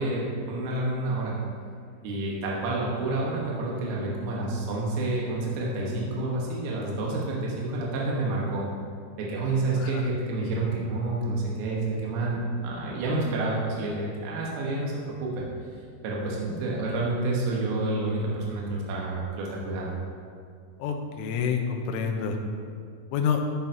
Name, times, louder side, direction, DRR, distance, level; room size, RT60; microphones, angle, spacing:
voice 1, 0.0-1.3 2.0-8.7 9.2-14.9 15.2-15.5 16.0-19.9, right 2 dB, 90° right, -4 dB, 3.9 m, -29 dB
voice 2, 20.8-22.4 23.1-23.4, left 7 dB, 85° left, 3 dB, 3.3 m, -28 dB
14.0 x 8.8 x 2.8 m, 2.2 s
omnidirectional pair, 5.8 m